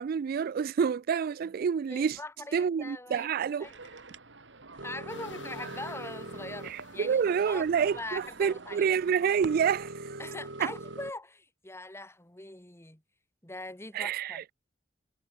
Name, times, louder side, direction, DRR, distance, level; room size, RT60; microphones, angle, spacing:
voice 1, 0.0-2.2 2.5-3.7 6.6-10.2 10.6-10.7 13.9-14.5, right 7 dB, 50° right, 0.3 m, -28 dB
voice 2, 1.9-3.3 3.6-3.8 4.8-7.7 7.9-8.9 10.2-13.0 13.4-14.4, left 2 dB, 15° left, 3.1 m, -42 dB
sound 1, 3.6-11.1, right 2 dB, 75° right, 2.9 m, -44 dB
sound 2, 5.1-8.2 8.7-8.8 9.4-10.5, left 4 dB, 85° left, 2.8 m, -51 dB
head